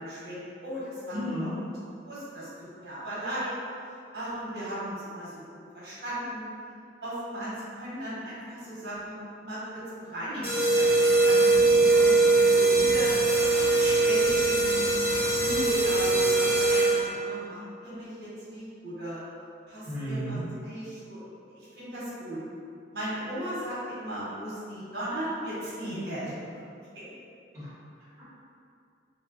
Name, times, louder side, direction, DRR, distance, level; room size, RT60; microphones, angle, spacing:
voice 1, 0.0-1.5 2.0-3.5 4.1-6.4 7.0-10.4 10.7-13.1 13.7-19.2 19.7-21.2 21.5-22.4 22.9-26.3, equal, 65° right, -9 dB, 1.0 m, -37 dB
voice 2, 1.1-1.5 19.8-20.4 27.5-28.2, equal, 15° right, -12 dB, 1.0 m, -34 dB
sound 1, 10.4-17.2, right 3 dB, 30° left, 1.2 m, -22 dB
2.9 x 2.2 x 3.8 m, 2.4 s
head